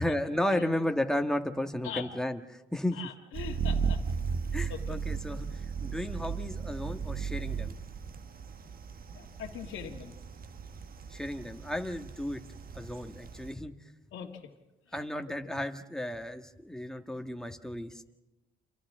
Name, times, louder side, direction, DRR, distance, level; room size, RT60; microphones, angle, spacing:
voice 1, 0.0-3.0 4.5-5.5 5.8-7.8 11.1-12.4 12.7-13.7 14.9-18.0, left 1 dB, 5° left, 5 dB, 1.6 m, -33 dB
voice 2, 2.9-4.0 4.7-5.0 5.3-5.6 9.1-10.2 14.1-14.4 15.4-15.5, left 8 dB, 80° left, -3 dB, 1.8 m, -41 dB
sound 1, 3.3-13.5, right 6 dB, 45° right, 1.3 m, -36 dB
30.0 x 26.0 x 3.7 m, 1.0 s
cardioid pair, 90°, 20 cm